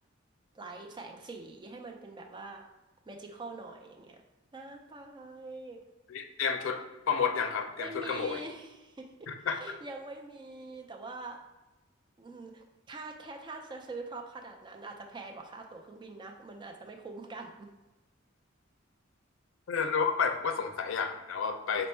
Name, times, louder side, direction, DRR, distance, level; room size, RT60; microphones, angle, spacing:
voice 1, 0.5-2.6 3.1-4.2 4.5-5.8 7.8-9.1 9.5-11.4 12.2-17.7, right 2 dB, 25° right, 2 dB, 0.4 m, -44 dB
voice 2, 6.1-6.8 7.1-8.4 9.3-9.6 19.7-21.9, left 6 dB, 75° left, 6 dB, 0.4 m, -30 dB
4.2 x 2.1 x 4.3 m, 1.1 s
head